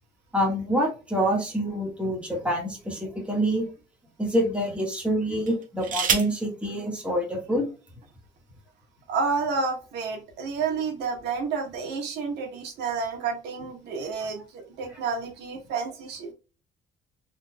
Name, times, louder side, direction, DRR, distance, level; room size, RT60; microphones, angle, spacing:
voice 1, 0.3-3.7 4.2-7.7, equal, 5° right, -2 dB, 1.4 m, -26 dB
sound 1, 1.7-2.9 3.6-3.8 5.4-6.5 7.6-7.7 8.0-8.4, right 7 dB, 55° right, 0.9 m, -30 dB
voice 2, 9.1-16.3, right 5 dB, 85° right, 1 dB, 1.4 m, -30 dB
3.9 x 3.3 x 2.2 m, 0.32 s
cardioid pair, 135°, 17 cm